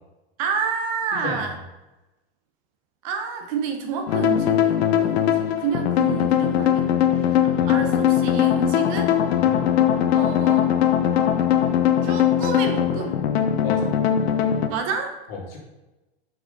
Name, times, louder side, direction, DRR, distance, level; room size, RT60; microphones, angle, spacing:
voice 1, 0.4-1.6 3.0-9.1 10.1-10.7 12.0-13.2 14.7-15.2, right 6 dB, 35° right, 5 dB, 0.6 m, -29 dB
voice 2, 1.1-1.4 7.6-7.7 9.4-9.7 13.6-13.9 15.3-15.6, left 4 dB, 65° left, -1 dB, 2.0 m, -33 dB
sound 1, 4.1-14.7, left 10 dB, 85° left, 0.8 m, -20 dB
5.9 x 5.0 x 3.7 m, 1.0 s
supercardioid pair, 165°, 31 cm